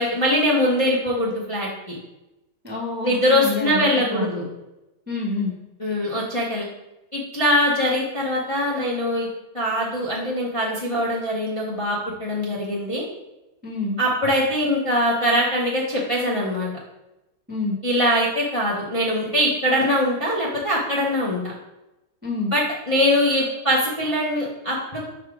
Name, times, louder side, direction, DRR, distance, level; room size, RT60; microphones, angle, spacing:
voice 1, 0.0-1.9 3.0-4.4 5.8-6.6 7.1-9.3 9.5-13.0 14.0-16.7 17.8-21.5 22.5-25.1, equal, 25° left, -6 dB, 0.8 m, -22 dB
voice 2, 2.6-4.5 5.1-5.5 13.6-14.0 17.5-17.8 22.2-22.5, left 3 dB, 10° right, -3 dB, 0.7 m, -28 dB
5.7 x 3.6 x 4.8 m, 0.97 s
omnidirectional pair, 1.9 m